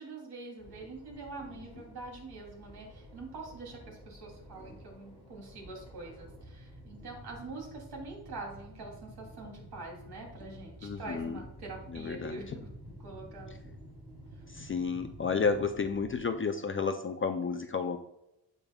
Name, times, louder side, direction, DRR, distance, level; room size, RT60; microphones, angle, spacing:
voice 1, 0.0-12.5 12.9-13.5 14.3-14.4, right 3 dB, 60° right, -1 dB, 3.0 m, -45 dB
sound 1, 0.6-16.3, equal, 10° right, 3.0 m, -50 dB
voice 2, 10.8-11.4 11.9-12.4 14.5-18.0, left 5 dB, 30° left, 6 dB, 0.4 m, -31 dB
15.5 x 5.3 x 2.3 m, 0.85 s
wide cardioid pair, 170°, 43 cm